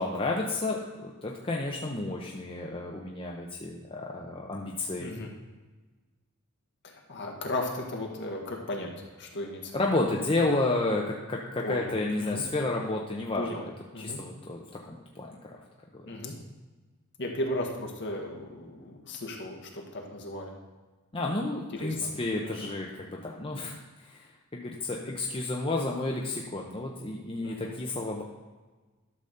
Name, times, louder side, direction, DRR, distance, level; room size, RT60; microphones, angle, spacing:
voice 1, 0.0-5.1 9.7-13.5 14.0-15.6 15.9-16.0 21.1-28.2, left 2 dB, 25° left, -1 dB, 0.7 m, -31 dB
voice 2, 5.0-5.3 6.8-8.9 9.2-9.8 11.6-12.4 13.4-13.6 13.9-14.2 16.0-16.4 17.2-20.5 21.7-22.1 22.4-22.7 27.4-27.7, left 1 dB, 50° left, 0 dB, 1.7 m, -36 dB
12.0 x 4.1 x 6.6 m, 1.3 s
head